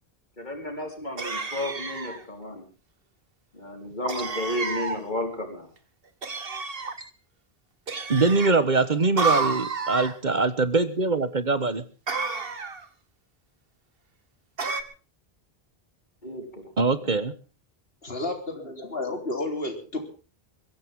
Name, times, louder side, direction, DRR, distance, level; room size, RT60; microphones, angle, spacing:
voice 1, 0.4-2.6 3.5-5.7 16.2-16.7 17.0-17.1, left 1 dB, 50° left, 4 dB, 4.8 m, -33 dB
sound 1, 1.2-2.2 4.1-5.0 6.2-7.0 7.9-8.5 9.2-10.1 12.1-12.9 14.6-14.8, right 4 dB, 65° right, 1.8 m, -30 dB
voice 2, 8.1-11.8 16.8-17.3, right 3 dB, 50° right, 13 dB, 1.3 m, -23 dB
voice 3, 18.0-20.0, left 2 dB, 70° left, 4 dB, 4.0 m, -31 dB
22.5 x 16.0 x 3.7 m, 0.36 s
omnidirectional pair, 1.0 m